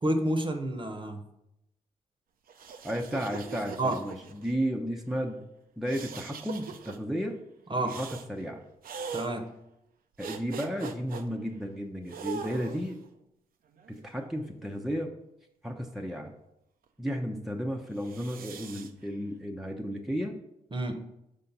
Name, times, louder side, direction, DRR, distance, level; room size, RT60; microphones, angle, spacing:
voice 1, 0.0-1.2 3.8-4.0 7.7-8.0 9.1-9.5 20.7-21.0, right 1 dB, 30° right, 6 dB, 1.0 m, -29 dB
sound 1, 2.5-4.5 5.9-7.0 7.9-8.3 8.8-9.3 10.2-11.2 12.1-13.0 13.8-14.9 18.0-18.9, right 6 dB, 65° right, 0.6 m, -41 dB
voice 2, 2.8-5.4 5.8-7.4 7.8-8.6 10.2-13.0 13.9-15.1 15.6-16.3 17.0-20.3, equal, ahead, 1 dB, 0.8 m, -33 dB
5.8 x 3.7 x 5.3 m, 0.84 s
supercardioid pair, 45°, 16 cm